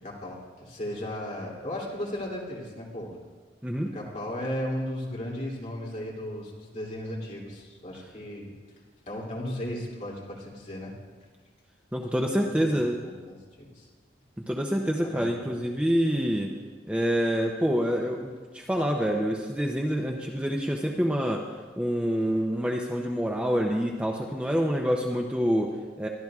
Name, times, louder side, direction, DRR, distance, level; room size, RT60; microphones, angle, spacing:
voice 1, 0.0-3.1 3.9-8.5 9.1-10.9 12.3-12.8 13.0-13.8 15.0-15.8, left 1 dB, 40° left, -4 dB, 2.7 m, -36 dB
voice 2, 3.6-3.9 11.9-13.0 14.5-16.5 16.9-21.5 21.8-26.1, equal, 5° right, 0 dB, 0.6 m, -27 dB
22.0 x 12.5 x 2.4 m, 1.4 s
head